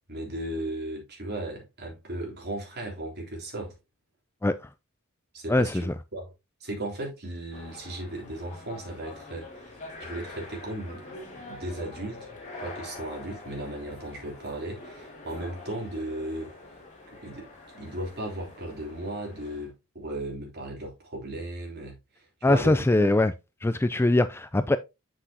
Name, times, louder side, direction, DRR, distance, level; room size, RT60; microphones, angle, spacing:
voice 1, 0.1-3.7 5.3-6.3 6.6-11.0 11.5-12.3 12.6-16.5 17.1-17.5 17.7-23.1, right 1 dB, 50° right, 3.2 m, -36 dB
voice 2, 5.5-5.9 22.4-23.3 23.6-24.8, left 2 dB, 10° left, 0.3 m, -22 dB
sound 1, 7.5-19.7, left 2 dB, 35° left, 2.6 m, -45 dB
7.9 x 6.2 x 2.8 m
head